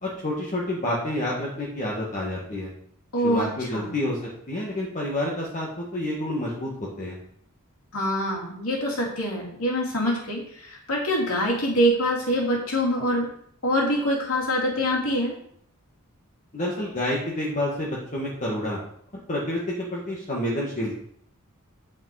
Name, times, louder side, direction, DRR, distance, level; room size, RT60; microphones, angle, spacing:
voice 1, 0.0-2.7 3.2-4.2 4.5-6.7 7.0-7.2 16.5-18.8 19.3-20.9, left 1 dB, 35° left, -4 dB, 1.5 m, -28 dB
voice 2, 3.1-3.9 7.9-13.3 13.6-15.3, equal, 75° left, -2 dB, 2.8 m, -25 dB
8.8 x 5.1 x 4.7 m, 0.66 s
head